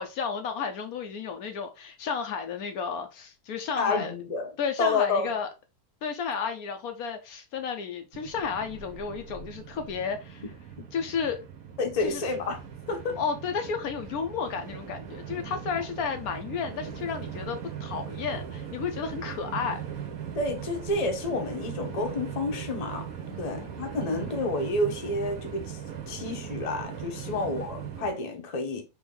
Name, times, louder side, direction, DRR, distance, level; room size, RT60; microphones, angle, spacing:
voice 1, 0.0-4.1 4.6-5.5 6.0-10.4 10.9-11.4 12.0-12.2 13.2-19.8 23.3-23.6 24.0-24.3 27.2-27.5, left 6 dB, 70° left, 1.1 m, -32 dB
voice 2, 3.8-4.5 4.8-5.3 11.8-13.2 20.3-23.1 23.4-25.8 26.1-28.8, left 2 dB, 30° left, 0.8 m, -29 dB
Train, 8.1-28.1, right 8 dB, 65° right, 1.5 m, -39 dB
4.3 x 3.1 x 3.7 m
omnidirectional pair, 1.7 m